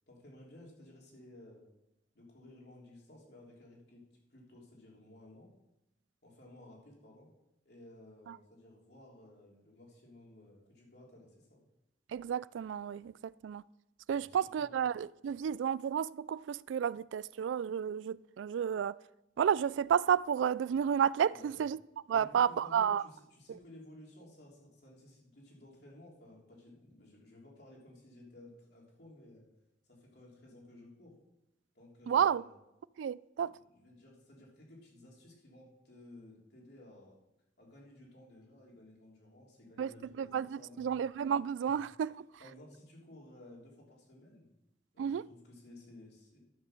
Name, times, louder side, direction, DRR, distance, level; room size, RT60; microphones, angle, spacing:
voice 1, 0.1-1.7 2.1-4.0 4.3-5.5 6.2-7.3 7.7-11.6 14.1-14.7 21.3-21.6 22.1-29.4 29.8-31.2 31.8-32.6 33.4-37.2 37.6-41.0 41.6-41.7 42.1-44.5 44.9-46.4, left 1 dB, 60° left, 3.5 m, -56 dB
voice 2, 12.1-13.6 14.1-19.0 19.4-21.8 22.1-23.0 32.1-32.4 33.0-33.5 39.8-39.9 40.2-42.3 45.0-45.2, right 8 dB, 85° right, 0.3 m, -31 dB
12.0 x 6.8 x 6.5 m
head